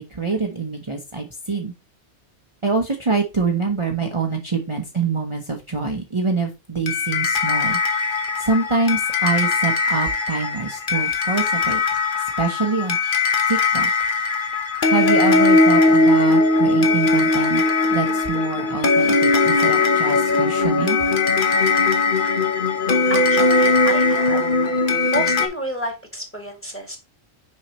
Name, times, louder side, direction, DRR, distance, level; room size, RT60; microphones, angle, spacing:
voice 1, 0.0-1.7 2.6-7.8 8.4-11.8 12.2-13.0 13.5-13.9 14.9-17.6 17.9-21.0, right 4 dB, 30° right, 2 dB, 0.9 m, -25 dB
sound 1, 6.9-25.5, left 3 dB, 50° left, 1.1 m, -19 dB
voice 2, 22.8-24.5 25.1-27.0, right 1 dB, 10° left, 3 dB, 1.8 m, -30 dB
6.4 x 5.6 x 3.0 m, 0.26 s
omnidirectional pair, 1.2 m